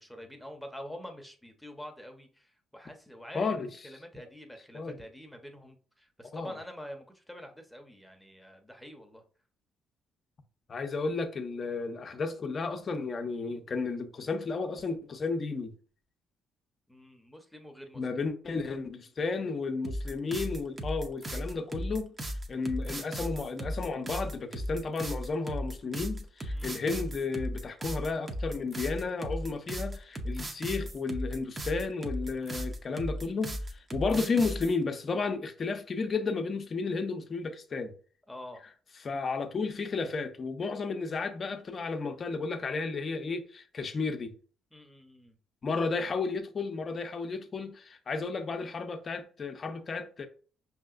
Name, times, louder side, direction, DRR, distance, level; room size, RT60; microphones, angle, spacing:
voice 1, 0.0-9.2 16.9-18.0 26.5-26.8 38.3-38.6 44.7-45.4, equal, 5° left, 0.8 m, -46 dB
voice 2, 3.3-3.7 4.7-5.0 6.3-6.5 10.7-15.7 18.0-22.1 22.5-37.9 39.0-44.3 45.6-50.3, left 4 dB, 45° left, 0.6 m, -33 dB
sound 1, 19.8-34.7, equal, 30° right, 0.7 m, -36 dB
5.3 x 2.8 x 2.5 m
supercardioid pair, 70°, 0 cm